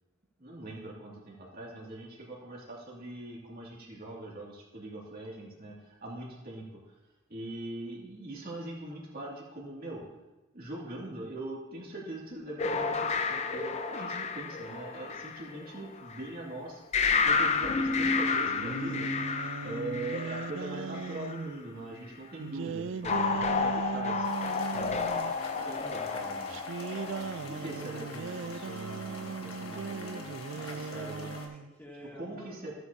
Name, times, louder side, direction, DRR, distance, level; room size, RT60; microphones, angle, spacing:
voice 1, 0.4-6.6 7.3-10.0 10.5-16.8 17.2-19.1 19.6-24.3 24.7-24.9 25.5-26.5 27.5-30.3 30.5-31.3 32.2-32.7, right 1 dB, 45° right, -4 dB, 2.3 m, -41 dB
sound 1, 12.6-16.2 16.9-21.4 23.0-27.4, left 4 dB, 30° left, 0.5 m, -31 dB
voice 2, 17.6-18.0 26.9-28.1 30.6-32.7, equal, 10° left, -5 dB, 2.3 m, -50 dB
sound 2, 18.3-21.5 22.4-25.4 26.5-31.7, right 5 dB, 60° right, 0.3 m, -38 dB
sound 3, 24.2-31.5, left 2 dB, 80° left, 1.4 m, -44 dB
15.5 x 8.0 x 2.7 m, 1.0 s
head